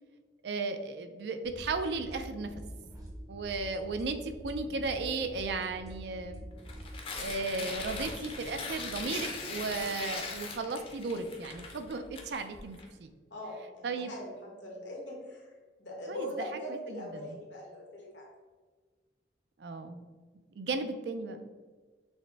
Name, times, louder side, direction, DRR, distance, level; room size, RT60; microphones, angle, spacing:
voice 1, 0.4-2.6 3.3-6.5 7.2-13.1 13.8-14.1 16.1-16.3 16.7-17.4 19.6-20.0 20.6-21.4, right 3 dB, 70° right, 8 dB, 0.4 m, -35 dB
sound 1, 1.4-6.9, equal, 20° right, 0.6 m, -46 dB
Tearing, 6.6-12.8, left 3 dB, 30° left, 0.5 m, -40 dB
voice 2, 13.3-15.5 15.8-18.3, left 1 dB, 90° left, -1 dB, 1.2 m, -41 dB
6.2 x 2.1 x 3.3 m, 1.4 s
head